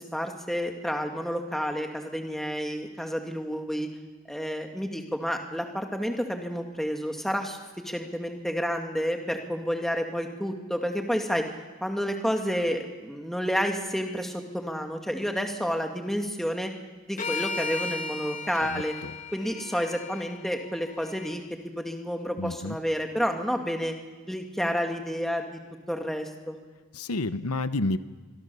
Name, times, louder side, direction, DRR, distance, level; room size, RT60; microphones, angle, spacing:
voice 1, 0.0-3.9 4.3-7.6 7.8-11.4 11.8-16.7 17.1-18.9 19.3-21.4 21.8-23.9 24.3-25.6 25.9-26.6, equal, ahead, 3 dB, 2.0 m, -30 dB
sound 1, 17.2-21.4, left 4 dB, 35° left, 1.6 m, -36 dB
voice 2, 18.6-19.1 22.4-22.8 26.9-28.0, left 2 dB, 90° left, 12 dB, 1.0 m, -30 dB
26.0 x 23.0 x 6.9 m, 1.4 s
head